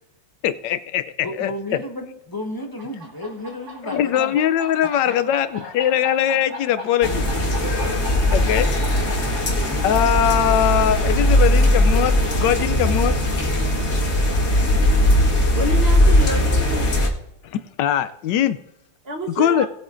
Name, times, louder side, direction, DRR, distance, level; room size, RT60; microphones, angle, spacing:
voice 1, 0.4-1.8 3.9-7.2 8.3-8.7 9.8-13.1 17.5-18.6 19.4-19.7, left 10 dB, 75° left, 13 dB, 1.2 m, -21 dB
voice 2, 1.2-4.4 5.0-6.0, left 1 dB, 15° left, 3 dB, 0.8 m, -33 dB
sound 1, 2.6-16.0, equal, 55° right, 2.8 m, -39 dB
sound 2, 7.0-17.1, left 1 dB, 60° left, 2.2 m, -19 dB
voice 3, 15.2-16.8 19.0-19.7, right 1 dB, 40° right, 3 dB, 1.2 m, -29 dB
19.5 x 8.7 x 2.5 m, 0.82 s
omnidirectional pair, 2.0 m